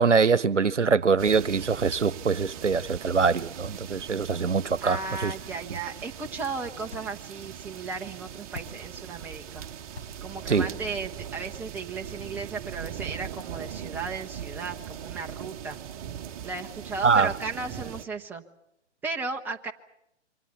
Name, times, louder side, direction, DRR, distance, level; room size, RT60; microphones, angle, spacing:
voice 1, 0.0-5.3 10.5-10.7 17.0-17.3, right 5 dB, 85° right, 0.9 m, -23 dB
sound 1, 1.2-18.0, right 9 dB, 30° right, 1.3 m, -40 dB
voice 2, 4.8-9.7 10.2-15.8 16.4-18.4 19.0-19.7, right 4 dB, 5° right, 0.8 m, -35 dB
sound 2, 5.2-12.3, left 3 dB, 60° left, 6.1 m, -51 dB
28.0 x 24.5 x 5.7 m
figure-of-eight pair, 130°, 35 cm